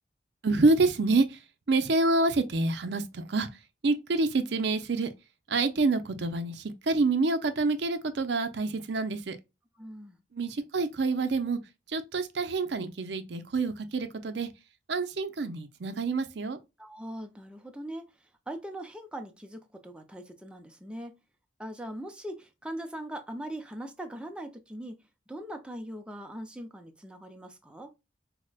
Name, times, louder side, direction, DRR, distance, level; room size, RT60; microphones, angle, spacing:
voice 1, 0.4-1.4 1.7-3.5 3.8-5.1 5.5-9.4 10.3-11.6 11.9-14.5 14.9-16.6, right 3 dB, 65° right, 0.5 m, -27 dB
voice 2, 9.8-10.2 16.8-18.1 18.5-21.1 21.6-25.0 25.3-27.9, right 1 dB, 5° right, 0.4 m, -40 dB
4.7 x 2.1 x 2.3 m
head